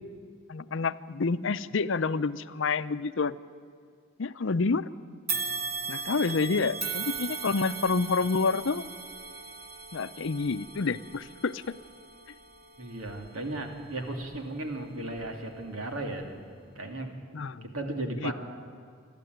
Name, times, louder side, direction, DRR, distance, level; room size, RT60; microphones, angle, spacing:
voice 1, 0.5-3.3 4.2-4.9 5.9-8.8 9.9-11.7 17.3-17.6 18.2-18.3, left 4 dB, 65° left, 13 dB, 0.6 m, -28 dB
sound 1, 5.3-14.6 15.1-15.3 16.2-16.3, right 4 dB, 45° right, 2.2 m, -38 dB
voice 2, 12.8-16.3 16.7-17.1 17.7-18.3, right 2 dB, 85° right, 4 dB, 2.7 m, -35 dB
28.5 x 12.0 x 9.3 m, 2.1 s
head